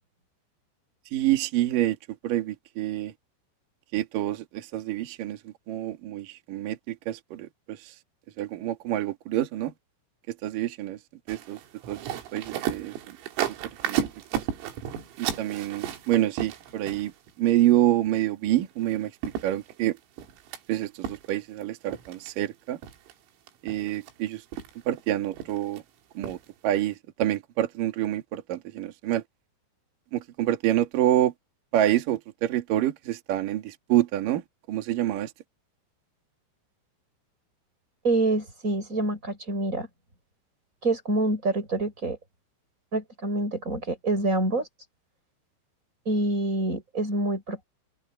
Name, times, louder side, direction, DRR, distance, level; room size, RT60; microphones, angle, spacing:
voice 1, 1.1-2.0 2.2-3.1 3.9-7.9 8.4-9.7 10.3-11.0 11.3-11.6 11.9-12.0 12.3-13.2 13.8-14.1 14.3-14.4 15.2-19.1 19.4-20.0 20.7-22.8 23.6-24.4 24.9-25.8 26.1-26.4 26.6-29.2 30.1-31.3 31.7-34.4 34.7-35.3, right 13 dB, 55° right, 2.9 m, -27 dB
sound 1, 11.3-17.3 18.8-18.9 19.2-20.6 21.0-21.6 21.9-22.3 22.8-23.1 23.5-24.1 24.5-25.0 25.3-25.8 26.2-26.5 26.8-26.9, right 10 dB, 85° right, 5.2 m, -33 dB
voice 2, 38.0-39.9 40.8-42.2 42.9-44.7 46.1-47.6, right 2 dB, 15° right, 7.0 m, -26 dB
omnidirectional pair, 5.9 m